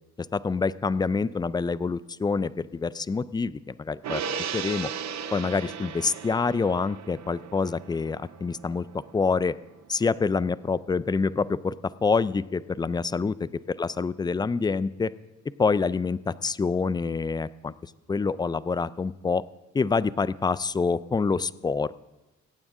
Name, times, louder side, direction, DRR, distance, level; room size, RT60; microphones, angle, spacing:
voice 1, 0.3-4.2 4.5-4.9 5.3-9.6 9.9-11.7 12.0-13.5 13.8-15.1 15.6-17.7 18.1-19.4 19.7-22.1, left 4 dB, 15° left, 18 dB, 0.3 m, -26 dB
Gong, 4.0-10.7 11.0-11.1, right 7 dB, 60° right, 0.9 m, -37 dB
22.0 x 8.9 x 3.7 m, 1.1 s
cardioid pair, 90°, 30 cm